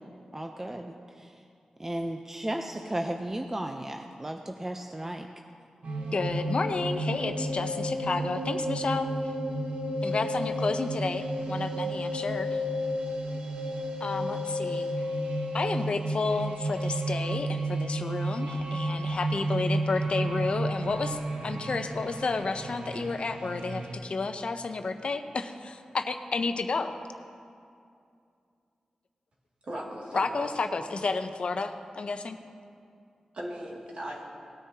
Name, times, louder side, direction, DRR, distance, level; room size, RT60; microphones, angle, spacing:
voice 1, 0.3-1.3 1.8-5.3, right 1 dB, 20° right, 4 dB, 0.6 m, -35 dB
sound 1, 5.8-23.9, right 1 dB, 80° right, 1.0 m, -32 dB
voice 2, 6.1-9.1 10.0-12.6 14.0-14.9 15.5-26.9 30.1-32.4, left 4 dB, 60° left, 8 dB, 0.6 m, -31 dB
voice 3, 29.6-30.5 33.3-34.3, right 1 dB, 60° right, -3 dB, 2.2 m, -38 dB
18.5 x 9.6 x 2.8 m, 2.4 s
cardioid pair, 65°, 2 cm